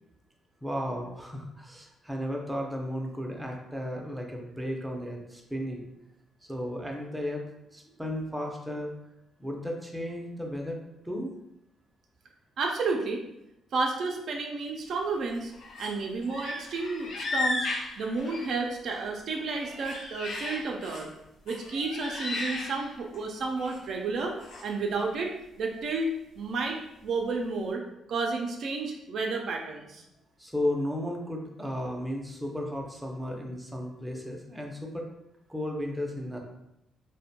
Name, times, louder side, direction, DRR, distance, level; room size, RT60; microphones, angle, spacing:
voice 1, 0.6-5.9 6.5-7.4 7.7-8.9 9.4-10.8 11.0-11.3 30.4-35.1 35.5-36.4, left 1 dB, 5° right, 0 dB, 0.5 m, -34 dB
voice 2, 12.6-13.2 13.7-15.5 15.8-17.7 18.0-21.1 21.5-24.4 24.6-25.3 25.6-26.1 26.4-27.8 28.1-30.0, right 3 dB, 65° right, 1 dB, 0.4 m, -31 dB
sound 1, 15.3-16.0 16.2-19.0 19.4-21.1 21.5-23.2 23.5-23.8 24.4-24.7, left 2 dB, 75° left, 0.5 m, -35 dB
2.5 x 2.1 x 2.7 m, 0.85 s
cardioid pair, 90°, 0 cm